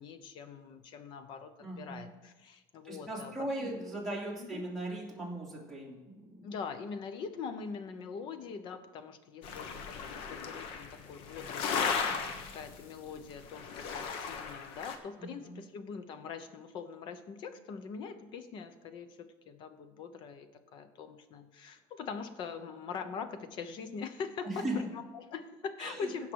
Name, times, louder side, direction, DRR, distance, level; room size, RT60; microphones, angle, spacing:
voice 1, 0.0-3.3 3.6-3.7 4.5-4.6 6.4-24.6 24.9-26.3, left 5 dB, 55° left, 10 dB, 0.9 m, -43 dB
voice 2, 1.6-2.1 2.8-6.4 15.2-15.6 24.4-24.8 25.8-26.1, right 1 dB, ahead, -4 dB, 2.8 m, -38 dB
sound 1, 9.4-13.1 13.5-15.0, left 6 dB, 70° left, 1.2 m, -36 dB
16.5 x 5.7 x 4.7 m, 1.2 s
cardioid pair, 155°, 10 cm